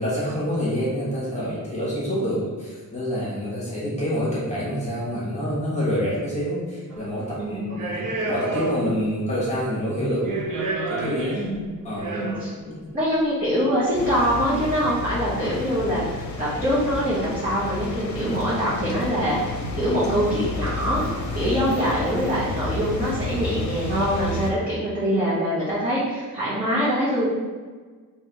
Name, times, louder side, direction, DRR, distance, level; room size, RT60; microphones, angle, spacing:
voice 1, 0.0-10.4 10.9-11.4 11.8-12.2 12.7-12.8, equal, 20° left, -8 dB, 1.3 m, -27 dB
sound 1, 6.9-7.1 7.7-9.1 9.3-9.4 10.0-12.7 13.6-13.7 15.4-15.9 16.4-16.5 16.7-17.2 17.5-17.9 18.3-18.6 19.0-19.9 20.3-21.2 21.6-21.9 22.1-22.5 23.0-23.5, right 3 dB, 65° right, 0.7 m, -32 dB
voice 2, 7.4-7.7 11.3-11.7 12.1-12.5 12.9-19.4 19.8-21.1 21.3-27.3, equal, 25° right, -12 dB, 1.3 m, -24 dB
sound 2, 13.9-24.5, left 3 dB, 55° left, 0.7 m, -31 dB
3.4 x 3.0 x 4.6 m, 1.4 s
wide cardioid pair, 145°, 34 cm